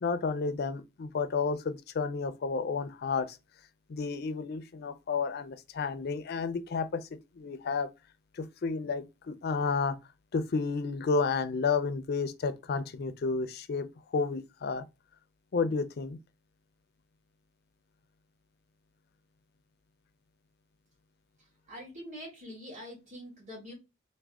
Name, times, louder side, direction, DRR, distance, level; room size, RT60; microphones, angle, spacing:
voice 1, 0.0-3.4 3.9-7.0 7.4-7.9 8.3-9.9 10.3-13.9 14.1-14.8 15.5-16.2, left 4 dB, 55° left, 0.4 m, -31 dB
voice 2, 21.4-23.7, equal, 40° right, 2.0 m, -45 dB
3.5 x 2.1 x 3.4 m
head